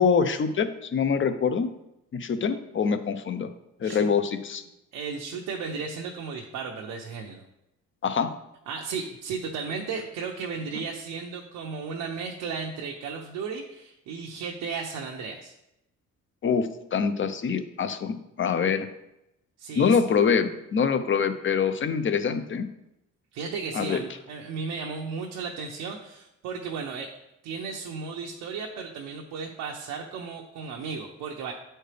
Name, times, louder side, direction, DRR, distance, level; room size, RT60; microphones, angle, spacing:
voice 1, 0.0-1.7 2.1-3.5 3.8-4.6 8.0-8.3 16.4-18.9 19.8-22.7 23.7-24.0, left 6 dB, 40° left, 10 dB, 0.7 m, -25 dB
voice 2, 4.9-7.4 8.7-15.5 19.6-20.0 23.3-27.1 27.4-31.5, right 5 dB, 90° right, 0 dB, 0.8 m, -35 dB
9.0 x 4.4 x 3.3 m, 0.86 s
cardioid pair, 90°, 30 cm